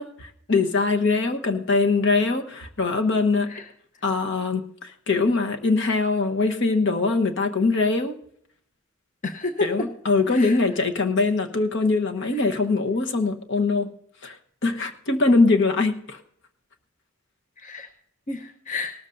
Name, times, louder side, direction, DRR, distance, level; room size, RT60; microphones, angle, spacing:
voice 1, 0.0-3.6 4.0-8.1 9.6-13.9 14.2-14.4 14.6-16.2, left 3 dB, 60° left, 5 dB, 1.1 m, -22 dB
voice 2, 9.2-9.9 10.3-10.6 12.4-12.5 17.6-17.9 18.3-18.9, left 3 dB, 40° left, 5 dB, 0.8 m, -31 dB
18.5 x 13.5 x 2.6 m, 0.68 s
head